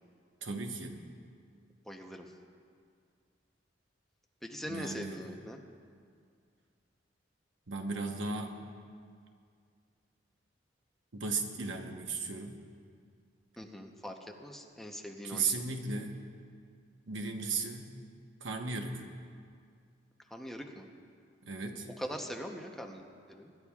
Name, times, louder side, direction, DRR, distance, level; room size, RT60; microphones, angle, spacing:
voice 1, 0.4-1.0 4.7-5.1 7.7-8.5 11.1-12.6 15.2-16.2 17.1-17.9 18.4-19.1 21.4-21.9, right 4 dB, 85° right, 4 dB, 1.1 m, -36 dB
voice 2, 1.8-2.3 4.4-5.6 13.6-15.7 20.3-20.9 22.0-23.0 23.3-23.5, equal, ahead, 2 dB, 0.8 m, -42 dB
24.5 x 11.5 x 2.4 m, 2.2 s
head